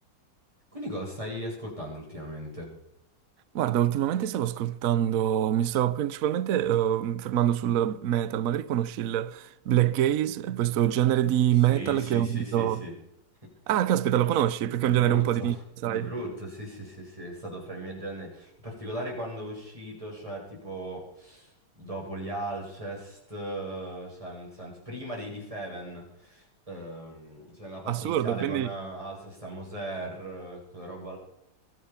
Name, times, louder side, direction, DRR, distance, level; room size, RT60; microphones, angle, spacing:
voice 1, 0.7-2.7 11.6-12.9 13.4-13.5 14.8-31.2, right 1 dB, 15° right, 7.9 m, -38 dB
voice 2, 3.5-12.8 13.7-15.6 15.8-16.1 27.9-28.7, right 11 dB, 90° right, 0.7 m, -25 dB
23.5 x 9.5 x 5.7 m
omnidirectional pair, 2.3 m